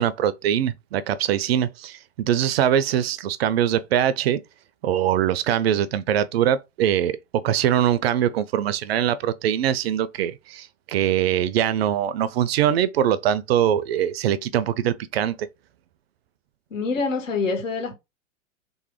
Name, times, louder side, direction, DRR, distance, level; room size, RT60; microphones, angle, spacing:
voice 1, 0.0-4.4 4.8-15.5, right 10 dB, 50° right, 0.5 m, -22 dB
voice 2, 16.7-17.9, left 4 dB, 70° left, 1.9 m, -25 dB
3.4 x 3.1 x 3.0 m
hypercardioid pair, 110°, 40 cm